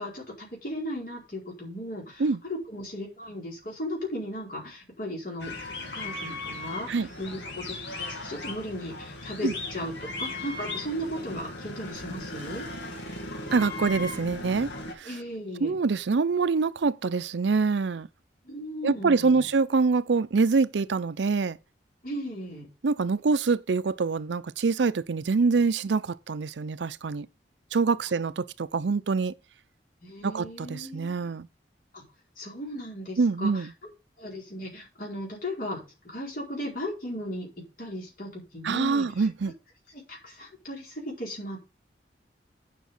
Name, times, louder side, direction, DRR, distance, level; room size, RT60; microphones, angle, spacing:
voice 1, 0.0-5.5 5.9-12.7 15.0-15.8 18.4-19.5 22.0-22.7 30.0-31.3 31.9-32.0 32.4-33.7 34.2-37.5 37.8-39.3 39.9-41.6, equal, 50° left, 4.6 m, -36 dB
sound 1, 5.4-14.9, left 2 dB, 85° left, 2.4 m, -37 dB
voice 2, 13.5-14.7 15.0-15.1 15.6-18.1 18.8-21.6 22.8-27.3 27.7-29.3 30.2-31.5 33.2-33.7 38.6-39.5, right 4 dB, 85° right, 0.5 m, -25 dB
9.3 x 5.9 x 5.5 m
head